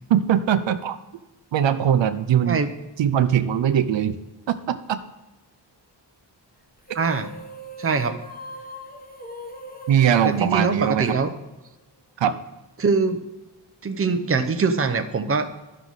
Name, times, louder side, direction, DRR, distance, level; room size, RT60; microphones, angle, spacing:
voice 1, 0.1-1.0 1.5-2.6 3.0-4.2 4.5-5.0 9.9-11.2 12.2-12.4, right 9 dB, 80° right, 10 dB, 0.6 m, -21 dB
sound 1, 6.8-11.5, right 1 dB, 20° left, 1.2 m, -40 dB
voice 2, 6.9-7.3 7.8-8.2 10.2-11.3 12.8-13.2 13.8-15.5, right 4 dB, 30° right, 7 dB, 0.7 m, -23 dB
12.0 x 6.2 x 4.0 m, 1.1 s
wide cardioid pair, 120°, 44 cm